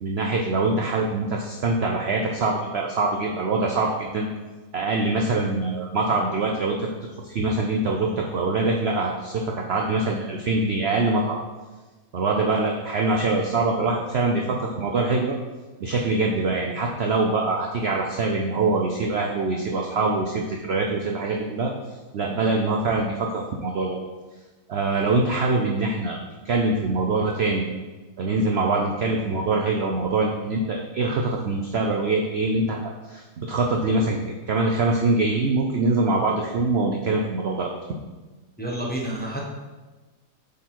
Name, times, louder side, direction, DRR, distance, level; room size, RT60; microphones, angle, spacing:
voice 1, 0.0-4.3 4.7-6.9 7.2-11.4 12.1-15.4 15.8-21.7 22.1-24.0 24.7-26.2 26.4-27.7 28.2-34.2 34.5-37.7, right 3 dB, 60° right, 0 dB, 0.7 m, -24 dB
voice 2, 38.6-39.4, right 1 dB, 5° left, -4 dB, 1.1 m, -29 dB
8.3 x 3.9 x 4.5 m, 1.2 s
omnidirectional pair, 1.6 m